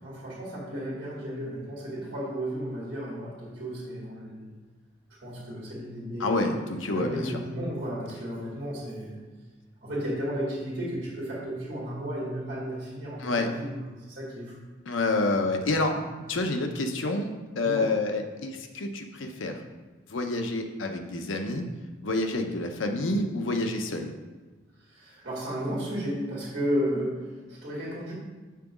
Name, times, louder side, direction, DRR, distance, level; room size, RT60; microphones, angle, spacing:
voice 1, 0.0-4.5 5.1-9.2 9.8-14.6 15.6-15.8 17.6-18.0 24.8-28.1, equal, 50° right, -6 dB, 2.0 m, -33 dB
voice 2, 6.2-7.3 13.2-13.5 14.9-16.0 16.3-19.6 20.1-21.6 22.0-24.1, left 2 dB, 85° left, 5 dB, 0.7 m, -28 dB
5.9 x 3.9 x 6.0 m, 1.3 s
head